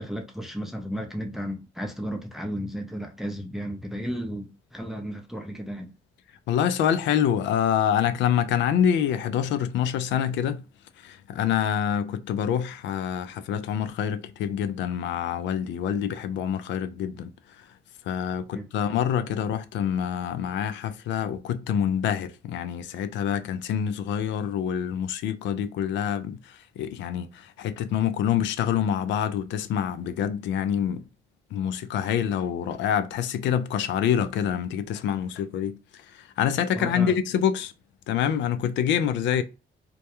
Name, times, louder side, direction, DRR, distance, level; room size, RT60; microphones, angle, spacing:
voice 1, 0.0-5.9 18.5-18.6 36.7-37.2, equal, ahead, 0.5 m, -34 dB
voice 2, 6.5-10.6 11.0-17.3 17.6-17.7 18.1-31.0 31.5-37.7 38.1-39.4, left 9 dB, 75° left, 0.4 m, -26 dB
2.2 x 2.2 x 2.8 m
supercardioid pair, 65°, 19 cm